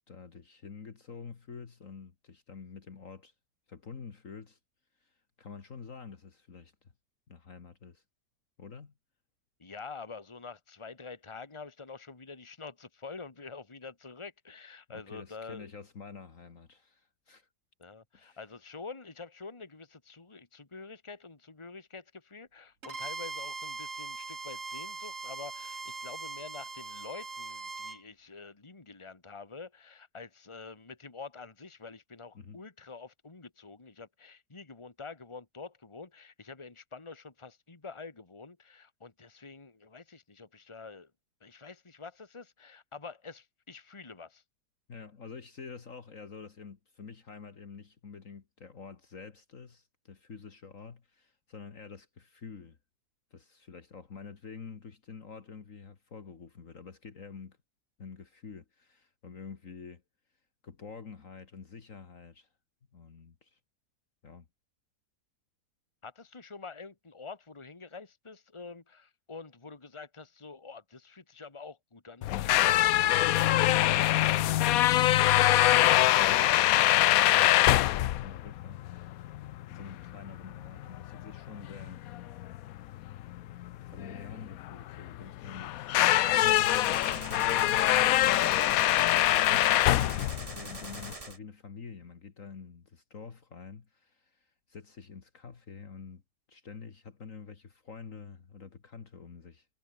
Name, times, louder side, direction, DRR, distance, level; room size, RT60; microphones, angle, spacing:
voice 1, 0.1-3.3 3.7-4.6 5.0-6.9 7.3-8.0 8.6-8.9 14.9-17.5 18.1-18.4 32.3-32.6 44.9-52.8 53.3-57.6 58.0-60.0 60.6-62.5 62.9-63.6 64.2-64.5 75.8-77.7 78.0-79.3 79.7-82.0 83.9-88.6 89.1-96.2 96.5-99.7, left 5 dB, 50° left, 2.0 m, -47 dB
voice 2, 9.6-15.7 17.8-41.1 41.4-44.4 66.0-73.6, left 4 dB, 15° left, 1.9 m, -47 dB
Bowed string instrument, 22.8-28.0, right 4 dB, 50° right, 3.1 m, -40 dB
sound 1, 72.2-91.1, left 14 dB, 70° left, 0.9 m, -24 dB
Gunshot gunfire, 86.4-91.4, right 2 dB, 20° right, 2.4 m, -43 dB
omnidirectional pair, 1.8 m